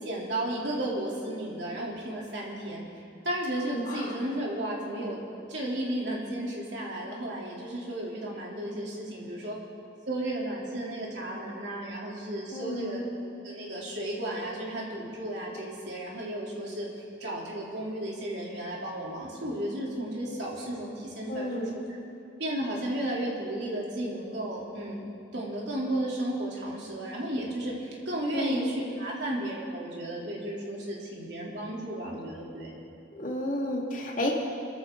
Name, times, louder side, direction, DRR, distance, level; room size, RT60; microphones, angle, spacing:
voice 1, 0.0-2.8 3.2-5.2 5.5-9.6 10.1-13.0 13.4-16.9 17.2-21.7 22.4-25.1 25.3-32.7, right 1 dB, 60° right, -4 dB, 3.5 m, -33 dB
voice 2, 3.7-4.1 12.5-13.0 21.3-21.8 28.3-28.7 33.2-34.3, left 1 dB, 45° left, -2 dB, 2.3 m, -31 dB
25.5 x 14.0 x 4.0 m, 2.8 s
head